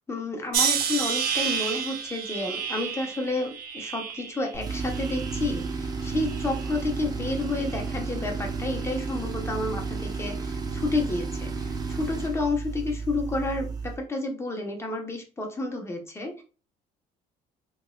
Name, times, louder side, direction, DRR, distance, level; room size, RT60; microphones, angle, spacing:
voice 1, 0.1-16.4, left 2 dB, 15° left, 2 dB, 0.8 m, -30 dB
sound 1, 0.5-5.7 6.1-6.8 7.5-7.8, right 7 dB, 65° right, 0.6 m, -31 dB
Tools, 4.5-14.0, right 4 dB, 25° right, 0.6 m, -32 dB
3.0 x 2.6 x 2.3 m, 0.35 s
cardioid pair, 110°, 17 cm